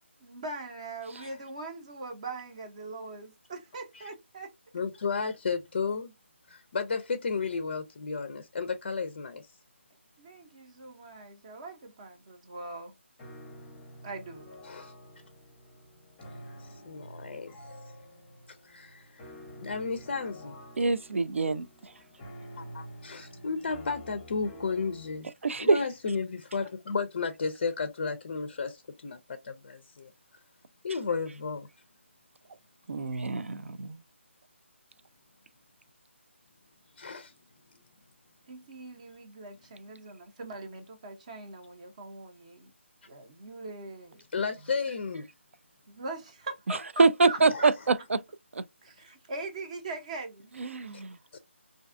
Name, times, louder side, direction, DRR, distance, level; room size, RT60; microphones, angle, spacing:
voice 1, 0.2-4.5 10.2-12.9 14.0-14.5 38.5-42.7 43.1-44.2 45.9-47.7 48.8-50.5 50.8-51.0, right 3 dB, 30° right, 0.6 m, -41 dB
voice 2, 4.7-6.1 6.5-9.5 14.7-14.9 16.3-17.6 18.6-19.3 19.6-20.5 22.6-25.3 25.6-30.1 30.8-31.7 37.0-37.3 44.3-45.3 47.5-47.6 50.9-51.0 51.3-51.4, left 5 dB, 45° left, 0.4 m, -33 dB
sound 1, 13.2-25.2, equal, 10° left, 0.7 m, -48 dB
voice 3, 20.8-21.9 25.4-25.8 32.9-34.0 46.7-48.2 48.5-48.6 50.6-51.2, right 3 dB, 75° right, 0.4 m, -25 dB
2.5 x 2.3 x 2.4 m
figure-of-eight pair, 160°, 7 cm